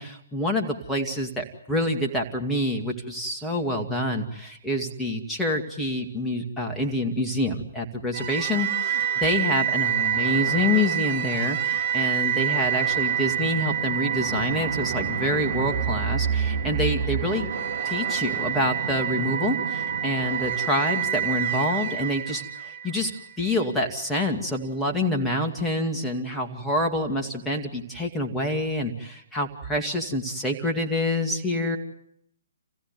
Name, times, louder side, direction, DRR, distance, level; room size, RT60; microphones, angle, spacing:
voice 1, 0.0-17.5 17.8-23.1 23.4-31.8, left 1 dB, 5° left, 1 dB, 2.2 m, -27 dB
sound 1, 8.1-23.3, right 8 dB, 45° right, 2.3 m, -27 dB
28.0 x 15.5 x 9.7 m, 0.77 s
figure-of-eight pair, 130°, 0 cm